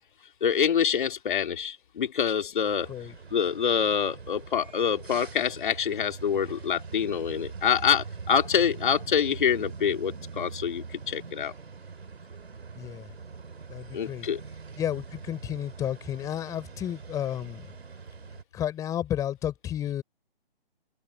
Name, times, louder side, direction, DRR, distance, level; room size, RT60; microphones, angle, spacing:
voice 1, 0.4-2.9 3.3-11.5 13.9-14.4, left 8 dB, 55° left, 2.5 m, -26 dB
sound 1, 2.6-18.4, right 5 dB, 85° right, 3.4 m, -43 dB
voice 2, 12.7-13.1 13.7-14.3 14.8-17.7 18.5-20.0, left 11 dB, 10° left, 3.9 m, -32 dB
open air
hypercardioid pair, 160°, 30 cm